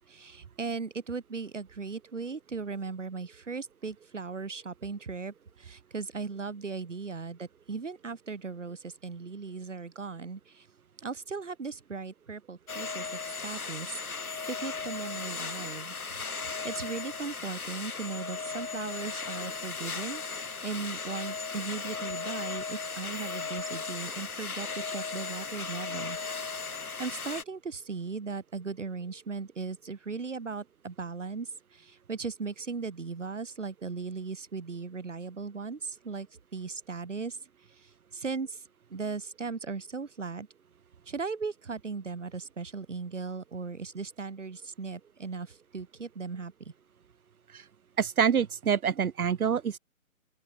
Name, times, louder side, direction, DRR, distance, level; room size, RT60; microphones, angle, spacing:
voice 1, 0.1-10.7 11.0-15.9 16.5-26.2 26.7-36.3 36.5-37.4 37.7-38.6 38.9-40.5 41.1-46.5, right 4 dB, 55° right, 5.6 m, -38 dB
sound 1, 12.7-27.4, left 4 dB, 90° left, 3.3 m, -36 dB
voice 2, 48.0-49.8, right 7 dB, 90° right, 1.0 m, -26 dB
open air
hypercardioid pair, 180°, 42 cm